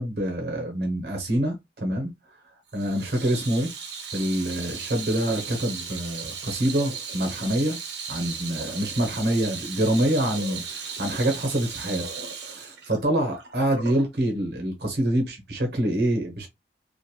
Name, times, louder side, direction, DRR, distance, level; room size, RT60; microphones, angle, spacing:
voice 1, 0.0-2.1 2.7-3.7 4.1-7.8 8.1-12.0 12.4-16.5, right 1 dB, 70° right, 0.9 m, -26 dB
Water tap faucet / Sink (filling or washing), 2.7-14.1, right 5 dB, 85° right, 0.8 m, -36 dB
2.9 x 2.4 x 2.2 m
head